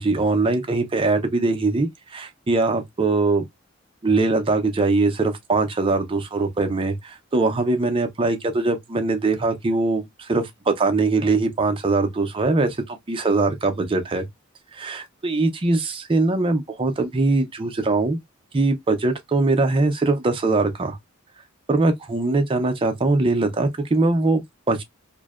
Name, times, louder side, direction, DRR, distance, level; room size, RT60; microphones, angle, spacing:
voice 1, 0.0-3.4 4.0-14.3 14.7-18.2 18.5-21.0 21.7-24.8, right 3 dB, 25° right, 0.5 m, -22 dB
2.5 x 2.1 x 2.3 m
head